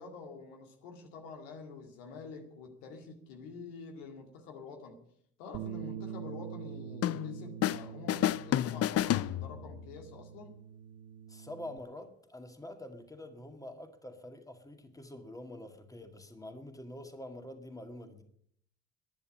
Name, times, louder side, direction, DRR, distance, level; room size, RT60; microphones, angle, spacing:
voice 1, 0.0-5.0 5.4-10.6, left 4 dB, 75° left, 4 dB, 2.3 m, -47 dB
Bass guitar, 5.5-11.8, right 9 dB, 65° right, 1.0 m, -45 dB
sound 1, 7.0-7.8 8.1-9.8, left 12 dB, 40° left, 0.6 m, -30 dB
voice 2, 11.3-18.2, left 1 dB, 10° left, 6 dB, 2.1 m, -46 dB
11.0 x 10.5 x 8.6 m, 0.68 s
hypercardioid pair, 55°, 37 cm